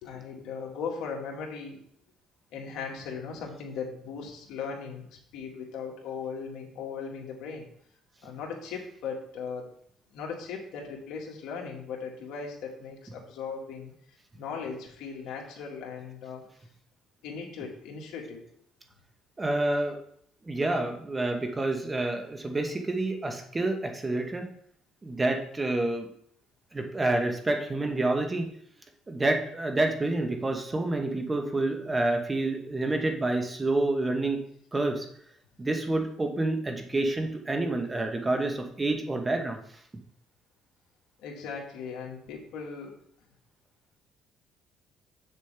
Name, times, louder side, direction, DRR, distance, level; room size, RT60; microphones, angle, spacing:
voice 1, 0.0-1.8 2.5-7.7 8.2-9.7 10.1-13.9 14.4-16.4 17.2-18.4 41.2-42.9, left 5 dB, 75° left, 0 dB, 1.8 m, -38 dB
voice 2, 19.4-19.9 20.4-24.5 25.0-26.1 26.7-28.5 29.1-34.4 34.7-35.1 35.6-39.6, right 2 dB, 20° right, 4 dB, 1.0 m, -28 dB
7.3 x 6.6 x 3.4 m, 0.66 s
cardioid pair, 115°, 0 cm